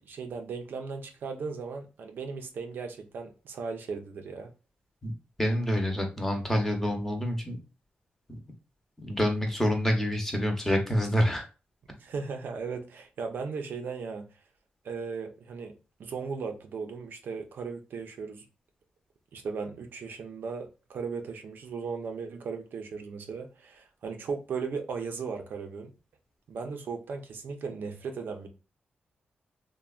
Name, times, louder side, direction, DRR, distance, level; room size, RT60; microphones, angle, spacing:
voice 1, 0.1-4.5 11.9-14.3 14.8-15.7 16.0-18.5 19.3-25.9 26.5-28.5, right 5 dB, 70° right, 0.5 m, -37 dB
voice 2, 5.4-7.6 9.0-11.4, equal, 10° left, 0.7 m, -27 dB
3.2 x 2.1 x 2.3 m
wide cardioid pair, 125°, 4 cm